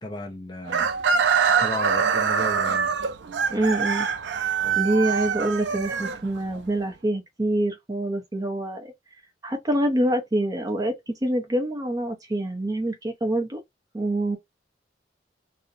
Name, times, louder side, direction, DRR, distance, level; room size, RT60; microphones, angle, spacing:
voice 1, 0.0-0.9 1.6-2.9 4.6-4.8, left 1 dB, 25° left, 0.6 m, -34 dB
Chicken rooster, 0.7-6.6, right 6 dB, 75° right, 0.4 m, -24 dB
voice 2, 3.5-4.1 4.4-13.6 13.9-14.4, right 1 dB, 20° right, 0.5 m, -26 dB
2.6 x 2.0 x 2.6 m
head